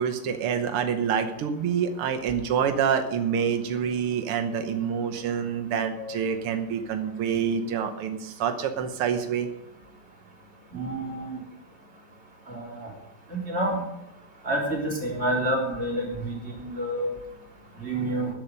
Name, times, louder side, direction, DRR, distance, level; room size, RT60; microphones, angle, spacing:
voice 1, 0.0-9.5, right 7 dB, 90° right, 7 dB, 1.9 m, -27 dB
voice 2, 10.7-11.4 12.5-12.9 13.3-13.8 14.5-17.1 17.8-18.3, right 1 dB, 30° right, -2 dB, 3.9 m, -28 dB
12.5 x 11.0 x 5.3 m, 0.85 s
omnidirectional pair, 2.4 m